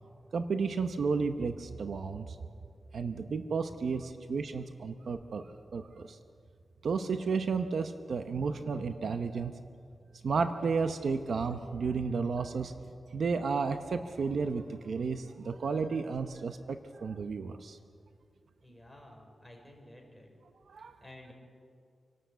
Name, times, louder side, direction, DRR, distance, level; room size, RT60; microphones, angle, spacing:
voice 1, 0.3-2.4 2.9-5.5 5.7-6.2 6.8-9.5 10.2-12.7 13.1-17.8 20.7-21.0, right 5 dB, 75° right, 8 dB, 0.9 m, -32 dB
voice 2, 18.6-20.3 20.8-21.3, left 1 dB, ahead, 1 dB, 5.1 m, -53 dB
26.5 x 12.0 x 8.2 m, 2.2 s
wide cardioid pair, 95°, 0 cm